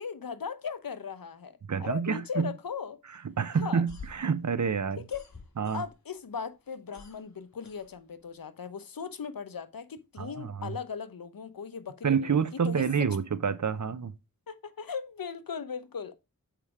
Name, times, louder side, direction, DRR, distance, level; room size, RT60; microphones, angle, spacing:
voice 1, 0.0-3.0 3.6-3.8 5.1-5.3 5.7-12.3 12.6-13.1 14.5-16.1, left 6 dB, 70° left, 0.9 m, -38 dB
voice 2, 1.7-2.5 3.4-5.0 5.6-5.8 10.2-10.7 12.0-14.1, right 6 dB, 55° right, 0.8 m, -28 dB
sound 1, 3.8-6.2 6.5-8.4, left 4 dB, 50° left, 2.3 m, -49 dB
7.5 x 4.9 x 4.8 m
wide cardioid pair, 50°, 36 cm